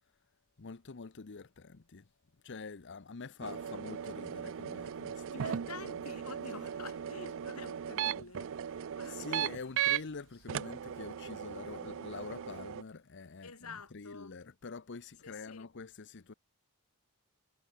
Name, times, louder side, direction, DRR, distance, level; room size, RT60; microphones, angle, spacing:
voice 1, 0.6-2.1 2.4-5.6 5.8-5.9 9.0-16.3, left 4 dB, 55° left, 0.8 m, -46 dB
sound 1, 3.4-10.0 10.5-12.8, right 9 dB, 60° right, 0.4 m, -37 dB
voice 2, 5.3-9.7 13.4-14.4 15.2-15.7, left 4 dB, 80° left, 5.3 m, -49 dB
head